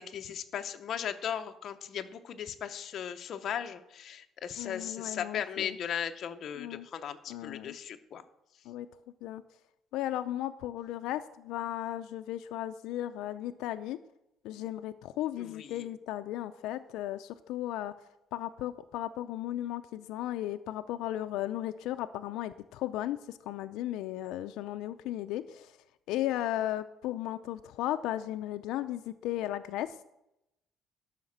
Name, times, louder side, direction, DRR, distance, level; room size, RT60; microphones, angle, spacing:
voice 1, 0.0-8.2 15.4-15.9, left 8 dB, 40° left, 7 dB, 0.8 m, -37 dB
voice 2, 4.6-5.8 6.6-6.9 7.3-7.8 8.7-8.9 9.2-9.4 9.9-14.0 14.4-17.9 18.3-25.7 26.1-29.9, left 13 dB, 80° left, 10 dB, 0.5 m, -35 dB
12.0 x 5.8 x 7.3 m, 0.86 s
cardioid pair, 175°, 0 cm